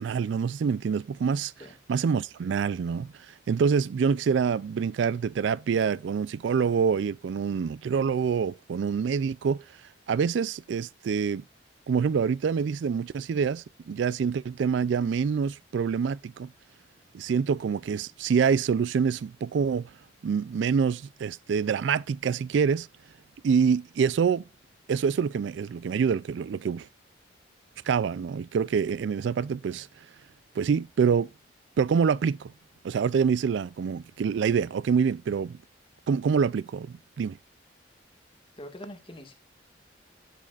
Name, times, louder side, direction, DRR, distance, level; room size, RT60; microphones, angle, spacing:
voice 1, 0.0-1.5 1.9-3.1 3.5-9.6 10.1-11.4 11.9-16.5 17.1-19.9 20.2-22.9 23.4-24.4 24.9-26.9 27.9-29.9 30.6-31.3 31.8-32.5 32.8-35.6 36.1-37.4, right 6 dB, 70° right, 0.3 m, -26 dB
voice 2, 38.6-39.3, left 1 dB, 30° left, 1.8 m, -43 dB
11.0 x 7.4 x 2.4 m
head